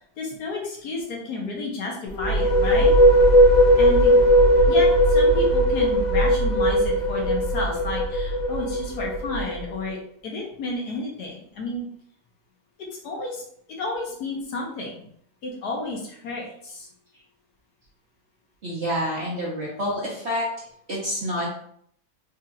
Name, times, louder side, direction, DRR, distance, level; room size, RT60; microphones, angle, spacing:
voice 1, 0.2-2.9 3.7-4.2 4.7-10.0 10.2-11.9 12.8-13.4 13.7-15.0 15.4-16.9, left 2 dB, 65° left, -1 dB, 1.3 m, -31 dB
sound 1, 2.1-9.7, equal, 80° left, 1.5 m, -18 dB
voice 2, 18.6-20.5 20.9-21.5, equal, 55° right, -5 dB, 0.8 m, -28 dB
4.3 x 2.8 x 2.5 m, 0.66 s
omnidirectional pair, 1.9 m